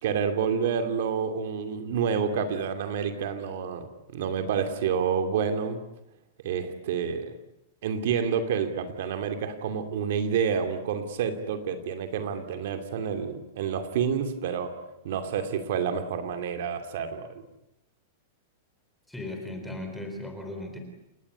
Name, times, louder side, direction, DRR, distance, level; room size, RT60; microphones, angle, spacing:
voice 1, 0.0-5.8 6.4-7.3 7.8-14.8 15.0-17.3, right 7 dB, 50° right, 7 dB, 2.6 m, -29 dB
voice 2, 19.1-20.8, left 1 dB, ahead, 3 dB, 4.1 m, -37 dB
29.5 x 18.5 x 9.8 m, 0.88 s
supercardioid pair, 180°, 0 cm